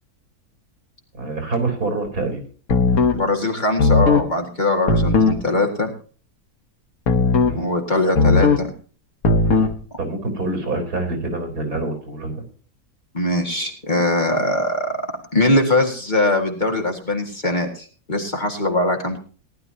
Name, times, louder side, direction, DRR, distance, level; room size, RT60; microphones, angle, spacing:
voice 1, 1.2-2.4 7.4-7.7 10.0-12.4, right 3 dB, 80° right, 5 dB, 4.4 m, -26 dB
sound 1, 2.7-3.2 3.8-4.3 4.9-5.4 7.1-7.6 8.2-8.7 9.2-9.8, left 4 dB, 70° left, 1.7 m, -16 dB
voice 2, 3.1-5.9 7.6-8.7 13.1-15.0 15.3-19.2, left 2 dB, 30° left, 1 dB, 2.1 m, -21 dB
19.0 x 11.5 x 2.8 m, 0.40 s
omnidirectional pair, 1.6 m